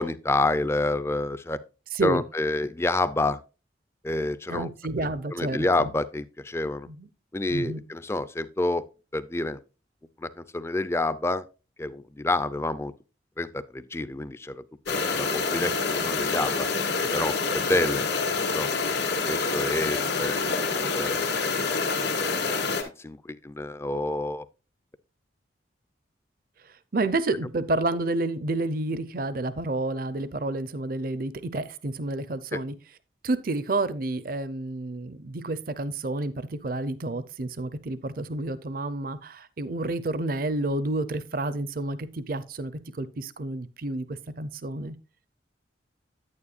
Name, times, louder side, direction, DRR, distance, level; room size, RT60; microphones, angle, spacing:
voice 1, 0.0-1.6 2.0-3.4 4.0-4.7 5.3-6.9 7.3-8.8 9.1-9.6 10.2-11.5 11.8-12.9 13.4-16.7 17.0-18.1 18.5-18.7 19.3-20.4 20.9-21.2 21.8-21.9 23.0-24.5 32.5-32.6, left 2 dB, 15° left, 0.4 m, -28 dB
voice 2, 4.5-5.9 6.9-7.1 7.5-7.8 26.9-32.7 33.2-44.9, right 2 dB, 50° right, 0.6 m, -30 dB
sound 1, 14.9-22.8, left 4 dB, 70° left, 2.2 m, -27 dB
9.8 x 9.2 x 2.4 m
head